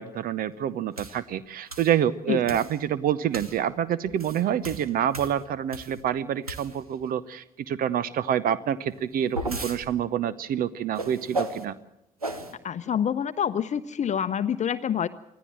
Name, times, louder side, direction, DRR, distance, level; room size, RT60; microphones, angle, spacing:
voice 1, 0.0-11.7, right 10 dB, 50° right, 19 dB, 0.8 m, -27 dB
sound 1, 1.0-1.2 1.7-2.0 2.5-2.8 3.3-3.6 4.0-6.0 6.4-7.0 8.9-9.8 11.0-11.6 12.2-12.5, right 1 dB, 85° right, 1.1 m, -34 dB
voice 2, 12.6-15.1, left 8 dB, 40° left, 12 dB, 0.7 m, -27 dB
24.5 x 15.0 x 7.7 m, 0.83 s
figure-of-eight pair, 40°, 18 cm